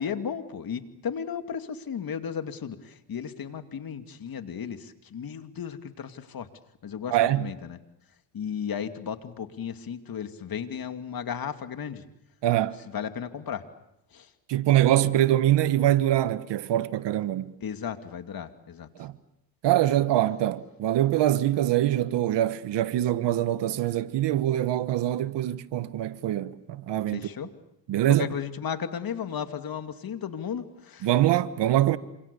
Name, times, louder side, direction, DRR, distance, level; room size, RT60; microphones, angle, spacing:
voice 1, 0.0-6.5 6.8-7.8 8.3-12.0 12.9-13.6 14.1-14.3 17.6-18.9 27.1-27.5 28.1-31.1, left 7 dB, 55° left, 2.5 m, -34 dB
voice 2, 7.1-7.5 12.4-12.8 14.5-17.5 19.0-19.1 19.6-27.3 27.9-28.3 31.0-32.0, right 13 dB, 75° right, 1.4 m, -24 dB
27.5 x 26.5 x 7.0 m
supercardioid pair, 75°, 43 cm